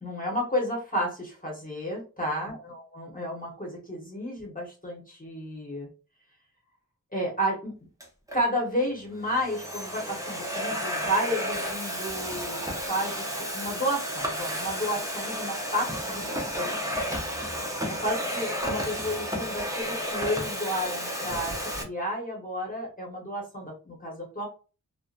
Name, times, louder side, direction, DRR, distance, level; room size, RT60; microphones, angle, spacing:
voice 1, 0.0-5.9 7.1-7.7 8.3-13.2 13.5-16.7 17.9-24.5, equal, 25° left, -2 dB, 1.0 m, -32 dB
Domestic sounds home sounds, 8.0-8.4 9.1-21.8, equal, 10° right, 0.7 m, -32 dB
2.7 x 2.1 x 2.4 m, 0.34 s
wide cardioid pair, 70°, 34 cm